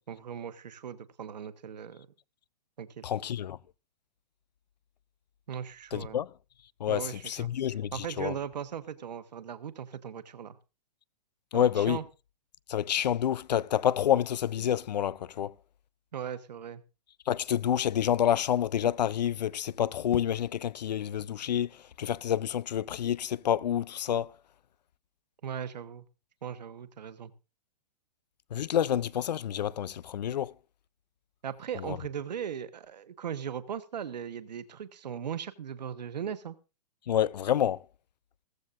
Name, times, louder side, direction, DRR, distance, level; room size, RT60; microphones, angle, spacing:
voice 1, 0.1-2.1 2.8-3.1 5.5-6.2 6.9-7.5 7.9-10.6 11.5-12.0 16.1-16.8 25.4-26.0 26.4-27.3 31.4-36.6, right 8 dB, 90° right, 1.3 m, -38 dB
voice 2, 3.0-3.6 5.9-6.3 6.8-8.3 11.5-12.0 12.7-15.5 17.3-21.7 22.0-24.3 28.5-30.5 31.9-32.0 37.1-37.8, left 10 dB, 90° left, 0.6 m, -28 dB
16.0 x 14.5 x 2.6 m
hypercardioid pair, 160°, 21 cm